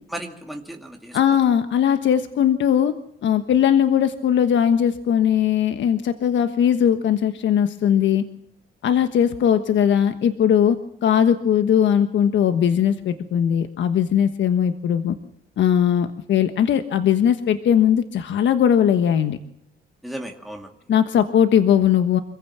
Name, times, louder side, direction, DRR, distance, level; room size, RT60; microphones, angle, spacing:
voice 1, 0.1-1.4 20.0-20.8, right 1 dB, ahead, 2 dB, 2.5 m, -35 dB
voice 2, 1.1-2.9 3.2-8.2 8.8-15.1 15.6-19.4 20.9-22.2, left 9 dB, 70° left, 9 dB, 1.4 m, -19 dB
26.0 x 15.5 x 7.4 m, 0.76 s
cardioid pair, 90°, 20 cm